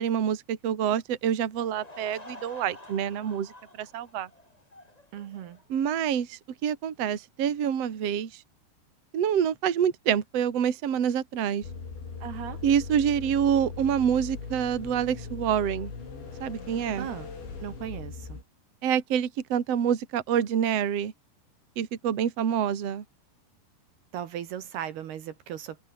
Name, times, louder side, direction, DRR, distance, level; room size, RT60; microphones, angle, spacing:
voice 1, 0.0-4.3 5.7-8.4 9.1-11.6 12.6-15.9 16.4-17.1 18.8-21.1 21.8-23.0, right 8 dB, 45° right, 2.8 m, -27 dB
Laughter / Crowd, 1.5-5.9, left 1 dB, 10° left, 3.2 m, -49 dB
voice 2, 5.1-5.6 12.2-12.6 17.0-17.3 17.6-18.4 24.1-25.8, right 10 dB, 70° right, 3.7 m, -37 dB
sound 1, 11.6-18.4, left 5 dB, 90° left, 9.8 m, -39 dB
omnidirectional pair, 5.0 m